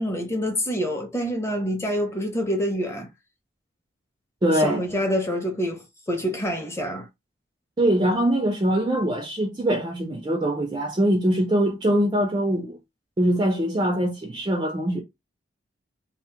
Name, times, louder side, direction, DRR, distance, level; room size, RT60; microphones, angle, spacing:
voice 1, 0.0-3.1 4.5-7.1, equal, 15° left, 0.6 m, -26 dB
voice 2, 4.4-4.8 7.8-12.8 13.2-15.0, right 1 dB, 25° right, 0.3 m, -23 dB
2.7 x 2.0 x 3.3 m
head